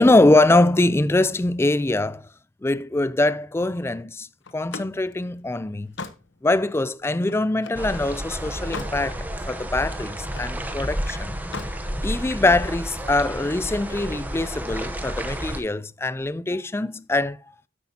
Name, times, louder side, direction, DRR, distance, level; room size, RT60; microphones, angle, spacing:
voice 1, 0.0-2.3 2.6-4.3 4.5-6.0 6.4-11.3 12.0-17.4, left 2 dB, 15° left, 0.4 m, -22 dB
Slam, 4.4-7.9 8.4-9.0 9.4-10.6 11.4-11.8, left 4 dB, 90° left, 1.0 m, -39 dB
sound 1, 7.7-15.6, equal, 10° right, 0.9 m, -31 dB
9.8 x 8.3 x 2.8 m
head